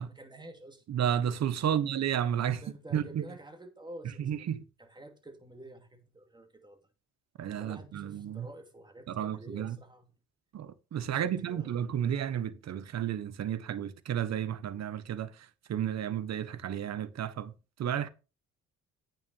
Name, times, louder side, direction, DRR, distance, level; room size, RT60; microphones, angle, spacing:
voice 1, 0.0-0.8 1.6-1.9 2.5-4.5 4.8-6.8 7.6-10.1 11.0-11.8, right 1 dB, 15° right, 2.5 m, -49 dB
voice 2, 0.9-2.6 2.9-3.2 4.2-4.6 7.4-8.5 9.1-9.8 10.5-15.3 15.7-17.5 17.8-18.1, right 9 dB, 60° right, 1.1 m, -32 dB
9.1 x 6.0 x 5.4 m
cardioid pair, 90°, 30 cm